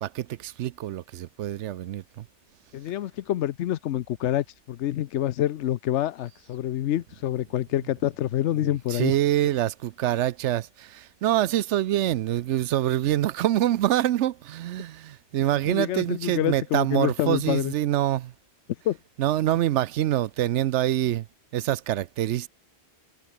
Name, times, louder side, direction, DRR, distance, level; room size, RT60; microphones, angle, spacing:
voice 1, 0.0-2.2 8.6-18.3 19.2-21.3 21.5-22.5, right 13 dB, 90° right, 0.9 m, -25 dB
voice 2, 2.7-9.1 15.7-17.7 18.8-19.0, left 12 dB, 85° left, 0.9 m, -27 dB
omnidirectional pair, 1.1 m